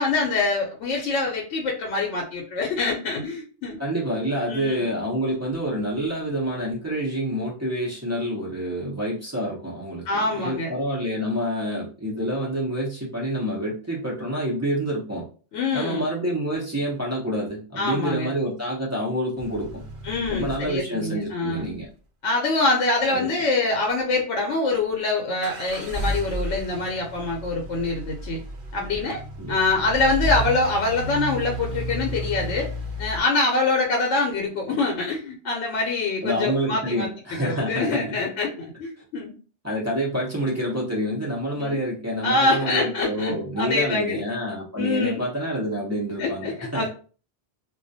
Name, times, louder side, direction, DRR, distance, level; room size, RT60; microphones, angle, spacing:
voice 1, 0.0-3.8 4.5-4.9 10.1-10.7 15.5-16.1 17.8-18.3 20.0-21.7 22.2-28.4 28.7-29.2 29.5-32.7 33.0-37.1 37.4-39.3 41.6-41.8 42.2-44.2 44.8-45.2 46.2-46.9, left 3 dB, 85° left, 0 dB, 0.9 m, -25 dB
voice 2, 3.8-15.2 15.7-19.7 20.3-21.9 23.1-23.3 29.4-29.6 36.2-38.1 39.6-46.9, equal, 25° right, -5 dB, 0.4 m, -27 dB
sound 1, 19.4-21.7 25.4-33.2, equal, 70° right, 0.9 m, -32 dB
2.3 x 2.1 x 2.6 m, 0.38 s
omnidirectional pair, 1.2 m